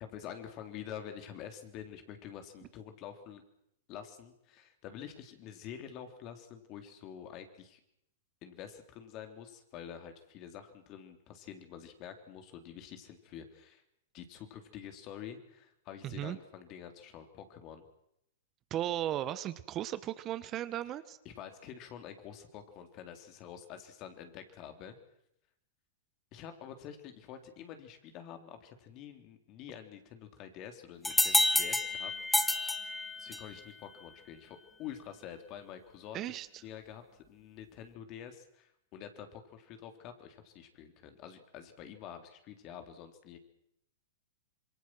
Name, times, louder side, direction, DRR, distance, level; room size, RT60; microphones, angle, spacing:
voice 1, 0.0-3.4 3.9-7.8 8.4-13.8 14.1-17.9 21.3-25.0 26.3-32.1 32.8-36.2 36.6-43.4, left 9 dB, 40° left, 7 dB, 3.7 m, -47 dB
voice 2, 16.0-16.4 18.7-21.2 36.1-36.5, right 12 dB, 30° right, 14 dB, 1.1 m, -36 dB
sound 1, 31.0-33.6, left 2 dB, 5° left, 1.6 m, -29 dB
26.5 x 23.0 x 6.3 m, 0.76 s
hypercardioid pair, 120°, 0 cm